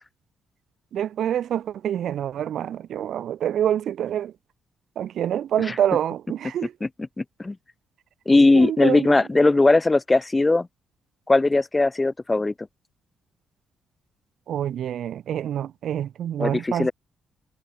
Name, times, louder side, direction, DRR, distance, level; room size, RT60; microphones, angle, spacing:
voice 1, 0.9-4.3 5.0-6.7 8.5-9.1 14.5-16.9, right 10 dB, 70° right, 0.6 m, -26 dB
voice 2, 7.2-7.6 8.3-10.7 11.3-12.5 16.4-16.9, left 2 dB, 20° left, 1.2 m, -19 dB
cardioid pair, 90°, 0 cm